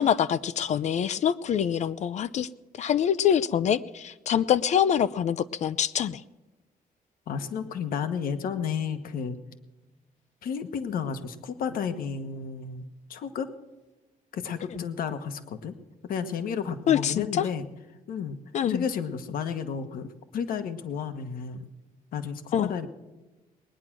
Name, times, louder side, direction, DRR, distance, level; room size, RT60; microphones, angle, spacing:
voice 1, 0.0-2.5 2.8-6.2 14.7-14.9 16.9-17.5 18.5-18.8 22.5-22.7, left 9 dB, 50° left, 15 dB, 0.5 m, -25 dB
voice 2, 7.3-9.4 10.4-12.8 13.1-13.5 14.3-15.7 16.1-17.7 18.1-18.4 18.7-20.1 20.3-21.7 22.1-22.9, left 7 dB, 70° left, 10 dB, 1.3 m, -32 dB
20.5 x 10.0 x 6.1 m, 1.2 s
cardioid pair, 180°, 15 cm